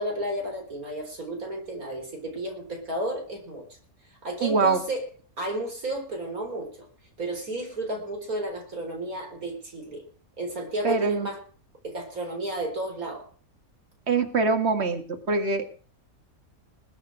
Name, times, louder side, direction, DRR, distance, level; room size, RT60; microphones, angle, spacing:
voice 1, 0.0-3.6 4.2-5.1 5.4-6.9 7.2-10.0 10.4-11.4 11.8-13.2, right 1 dB, 75° right, 2 dB, 4.6 m, -32 dB
voice 2, 4.4-4.8 10.8-11.3 14.1-15.7, right 4 dB, 45° right, 7 dB, 2.2 m, -24 dB
21.0 x 7.9 x 6.3 m, 0.42 s
omnidirectional pair, 1.5 m